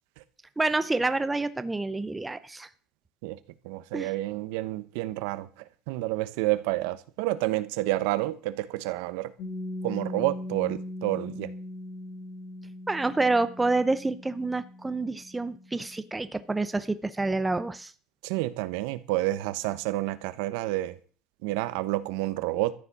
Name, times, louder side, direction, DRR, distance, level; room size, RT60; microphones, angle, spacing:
voice 1, 0.6-2.7 3.9-4.1 12.9-17.9, right 3 dB, 10° right, 0.6 m, -28 dB
voice 2, 3.6-5.5 5.9-9.3 9.8-11.5 18.2-21.0 21.4-22.7, right 17 dB, 85° right, 1.2 m, -29 dB
Piano, 9.4-16.7, left 1 dB, 35° left, 2.2 m, -40 dB
14.0 x 9.9 x 6.2 m
cardioid pair, 175°, 0 cm